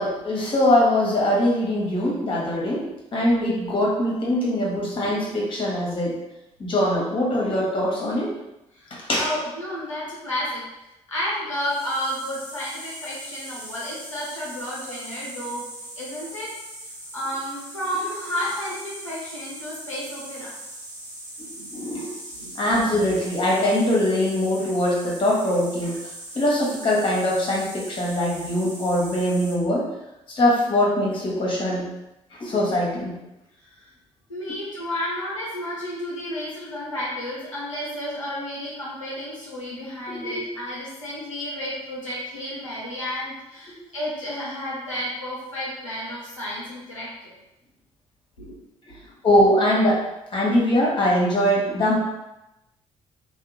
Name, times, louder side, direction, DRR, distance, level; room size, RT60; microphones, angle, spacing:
voice 1, 0.0-6.1 6.6-8.3 9.1-9.3 21.4-22.0 22.6-26.0 26.3-29.8 30.3-31.9 32.4-33.2 40.1-40.4 49.2-50.0 50.3-52.0, left 1 dB, 35° left, -3 dB, 1.0 m, -22 dB
voice 2, 8.7-10.6 11.1-15.6 16.0-16.5 17.1-20.5 21.6-21.9 22.3-22.5 33.8-33.9 34.3-47.1 48.4-48.6 49.0-49.1, left 1 dB, 90° left, -7 dB, 0.5 m, -31 dB
sound 1, 11.6-29.5, right 1 dB, 55° right, 0.9 m, -40 dB
2.7 x 2.3 x 2.6 m, 0.92 s
figure-of-eight pair, 45°, 16 cm